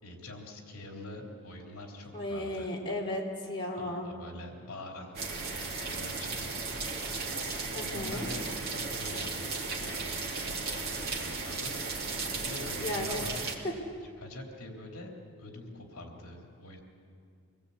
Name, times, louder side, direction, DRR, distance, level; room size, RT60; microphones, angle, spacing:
voice 1, 0.0-2.7 3.7-5.2 5.7-6.5 7.0-7.3 7.7-11.7 12.4-13.4 14.2-16.8, left 1 dB, 65° left, 1 dB, 3.4 m, -45 dB
voice 2, 2.1-4.1 7.7-8.3 12.7-13.3 13.6-13.7, left 1 dB, 20° left, -3 dB, 3.3 m, -35 dB
sound 1, 5.1-13.5, right 3 dB, 45° right, 2.9 m, -35 dB
25.5 x 20.0 x 8.5 m, 2.3 s
head